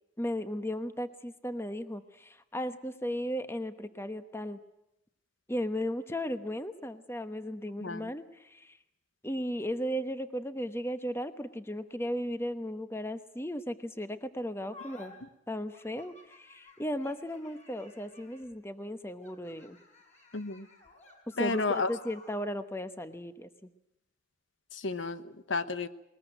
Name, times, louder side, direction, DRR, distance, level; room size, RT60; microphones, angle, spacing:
voice 1, 0.2-4.6 5.5-8.8 9.2-15.1 15.5-19.8 21.4-23.7, equal, 15° left, 10 dB, 1.0 m, -36 dB
sound 1, 14.7-15.1 15.7-18.5 19.2-22.4, left 2 dB, 35° left, 6.1 m, -52 dB
voice 2, 20.3-20.7 21.4-21.9 24.7-25.9, left 3 dB, 70° left, 12 dB, 1.1 m, -32 dB
21.0 x 20.5 x 9.1 m, 0.83 s
head